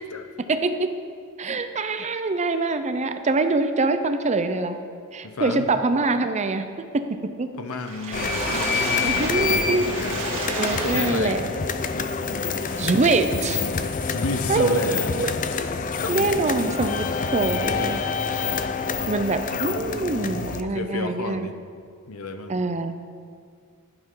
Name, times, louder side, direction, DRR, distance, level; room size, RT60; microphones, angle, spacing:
voice 1, 0.5-0.9 1.4-4.8 5.1-6.7 6.9-7.0 7.4-7.5 8.5-8.7 9.0-9.8 10.5-11.4 12.8-13.7 14.5-15.3 16.1-17.1 17.3-18.0 19.1-21.5 22.5-22.9, right 3 dB, 30° right, 9 dB, 0.6 m, -24 dB
voice 2, 5.2-5.7 7.6-10.2 10.8-11.4 12.1-12.7 14.0-16.1 20.6-21.6 22.1-22.6, left 3 dB, 70° left, 8 dB, 0.7 m, -32 dB
Water / Splash splatter, 7.7-11.6 12.1-12.2 12.5-12.6, right 2 dB, 65° right, 2.2 m, -31 dB
sound 1, 8.1-20.6, left 5 dB, 35° left, 0.5 m, -27 dB
11.5 x 10.0 x 3.8 m, 2.2 s
head